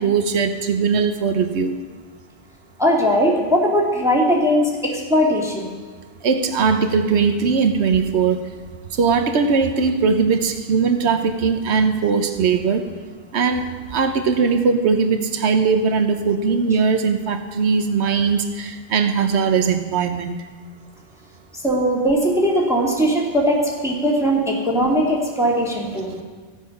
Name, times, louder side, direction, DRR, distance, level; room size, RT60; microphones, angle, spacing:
voice 1, 0.0-1.8 6.2-8.4 8.9-12.8 13.3-13.7 13.9-20.4, right 5 dB, 75° right, 7 dB, 1.2 m, -19 dB
voice 2, 2.8-5.8 21.6-26.2, equal, 5° right, -3 dB, 1.9 m, -19 dB
15.5 x 9.3 x 5.7 m, 1.5 s
omnidirectional pair, 1.1 m